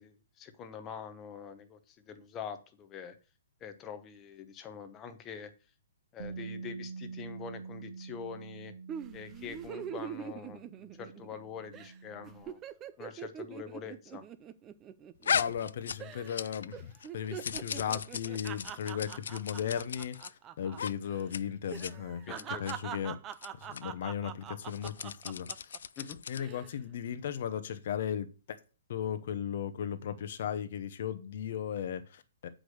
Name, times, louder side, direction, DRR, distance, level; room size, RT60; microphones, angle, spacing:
voice 1, 0.0-3.2 3.6-5.5 6.1-8.7 9.1-12.6 13.0-14.2 22.3-22.7 26.0-26.2, left 7 dB, 15° left, 0.8 m, -45 dB
Bass guitar, 6.2-12.4, right 5 dB, 70° right, 2.1 m, -46 dB
sound 1, 8.9-11.4 11.7-11.9 12.2-15.7 16.0-16.4 16.7-20.8 21.0-21.2 21.7-25.8 26.3-26.7, right 9 dB, 15° right, 0.4 m, -43 dB
sound 2, 15.2-16.7 17.0-20.3 20.7-20.9 21.2-21.4 21.7-21.9 22.3-22.7 23.3-23.5 23.7-23.8 24.6-26.5, left 7 dB, 70° left, 0.5 m, -37 dB
voice 2, 15.3-22.2 22.5-23.2 23.6-25.7 26.3-28.3 28.9-32.5, left 9 dB, 40° left, 0.8 m, -36 dB
8.1 x 5.1 x 6.4 m
hypercardioid pair, 175°, 0 cm